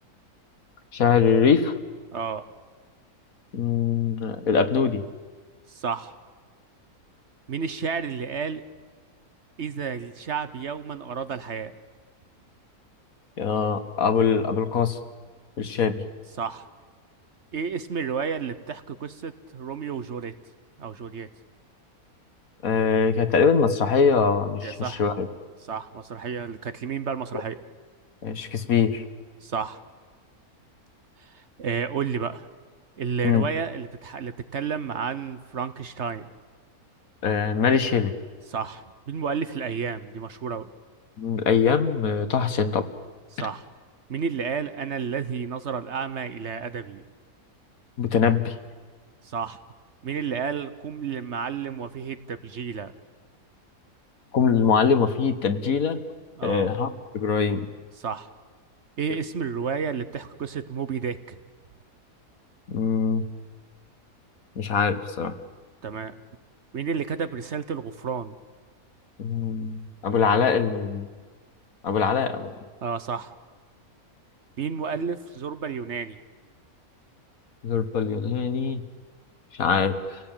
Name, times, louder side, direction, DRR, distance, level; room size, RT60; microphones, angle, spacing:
voice 1, 0.9-1.7 3.5-5.0 13.4-15.0 15.6-16.0 22.6-25.3 28.2-29.0 33.2-33.5 37.2-38.1 41.2-42.9 48.0-48.5 54.3-56.0 56.4-56.9 57.1-57.7 62.7-63.2 64.6-65.3 69.2-71.1 71.8-72.5 77.6-78.8 79.6-80.2, left 6 dB, 65° left, 10 dB, 1.7 m, -23 dB
voice 2, 2.1-2.4 5.7-6.2 7.5-8.6 9.6-11.7 16.4-16.7 17.5-20.3 20.8-21.3 24.6-25.1 25.7-27.6 29.4-29.8 31.2-32.5 33.0-36.3 38.5-40.7 43.3-43.6 44.1-47.0 49.2-49.6 50.0-52.9 56.4-56.7 58.0-58.3 59.0-61.4 65.8-66.1 66.7-68.4 72.8-73.3 74.6-76.2, right 6 dB, 55° right, 12 dB, 1.1 m, -31 dB
29.0 x 18.0 x 9.0 m, 1.5 s
omnidirectional pair, 1.6 m